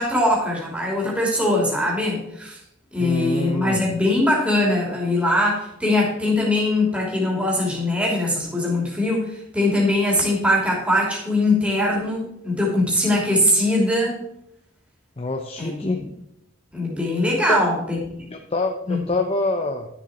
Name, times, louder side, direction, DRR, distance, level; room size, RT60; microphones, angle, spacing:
voice 1, 0.0-2.6 2.9-14.2 15.6-15.8 16.7-18.0 18.9-19.0, left 1 dB, 5° right, -3 dB, 2.8 m, -21 dB
voice 2, 3.0-3.8 15.2-16.0 17.5-17.7 18.3-19.9, left 2 dB, 30° left, 3 dB, 0.7 m, -25 dB
11.5 x 7.1 x 4.3 m, 0.78 s
head